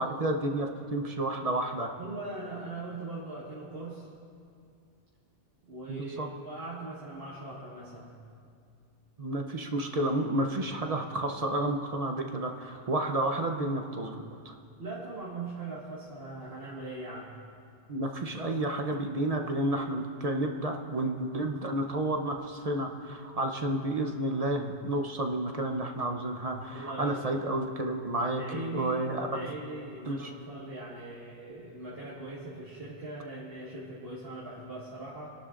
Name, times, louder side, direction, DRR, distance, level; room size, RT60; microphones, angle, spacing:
voice 1, 0.0-1.9 5.9-6.3 9.2-14.5 17.9-29.4 30.1-30.3, right 1 dB, 35° right, 3 dB, 0.8 m, -31 dB
voice 2, 2.0-4.1 5.7-8.2 14.8-17.4 26.7-27.2 28.2-29.0 29.3-35.3, right 2 dB, 55° right, -8 dB, 1.9 m, -40 dB
25.0 x 11.5 x 2.5 m, 2.3 s
omnidirectional pair, 1.2 m